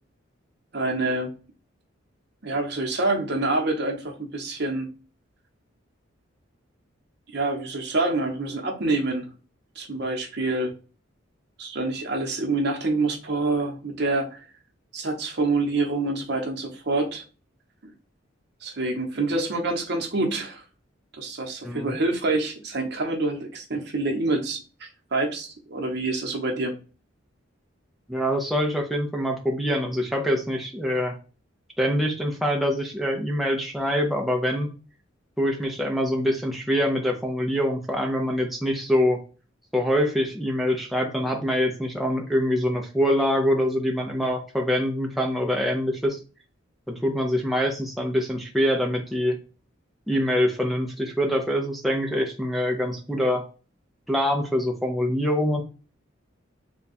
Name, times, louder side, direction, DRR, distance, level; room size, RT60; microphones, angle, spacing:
voice 1, 0.7-1.3 2.4-4.9 7.3-9.3 9.8-10.7 11.6-14.4 14.9-17.2 17.8-17.9 18.6-20.6 21.1-26.7, right 2 dB, 55° right, 0.9 m, -26 dB
voice 2, 28.1-31.2 31.8-34.7 35.4-39.2 39.7-46.2 46.9-49.4 50.1-53.4 54.1-55.6, equal, ahead, 0.5 m, -24 dB
3.4 x 2.3 x 4.0 m
head